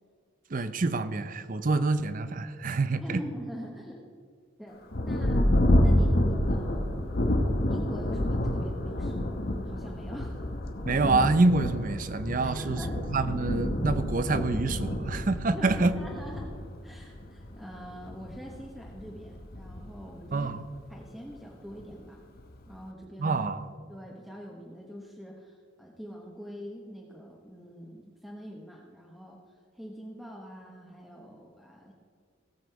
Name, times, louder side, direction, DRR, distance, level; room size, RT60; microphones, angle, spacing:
voice 1, 0.5-3.2 10.9-15.9 20.3-20.6 23.2-23.6, right 3 dB, 40° right, 13 dB, 0.6 m, -27 dB
voice 2, 2.9-4.1 4.6-5.5 5.8-7.2 7.7-9.3 9.6-10.5 12.4-12.9 15.5-16.5 16.8-20.5 20.9-22.2 22.7-23.3 23.9-29.4 29.7-31.9, equal, ahead, -3 dB, 1.0 m, -44 dB
Thunder, 4.9-21.0 21.7-21.8 22.4-22.8, left 1 dB, 50° left, 1.0 m, -29 dB
17.5 x 7.3 x 4.6 m, 2.2 s
head